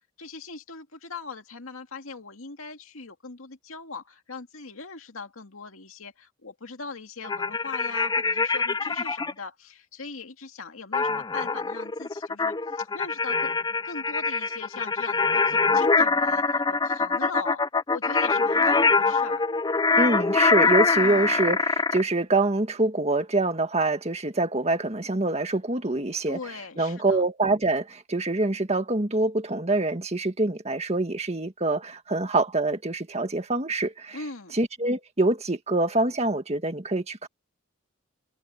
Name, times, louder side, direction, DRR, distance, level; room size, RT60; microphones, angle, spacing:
voice 1, 0.2-13.6 13.8-17.6 17.9-19.5 21.0-21.4 26.3-27.2 34.1-34.6, left 4 dB, 80° left, 2.3 m, -40 dB
sound 1, 7.2-9.3 10.9-22.0, left 4 dB, 20° left, 0.5 m, -24 dB
voice 2, 20.0-26.4 26.8-34.2 34.5-37.3, right 2 dB, 30° right, 1.8 m, -25 dB
head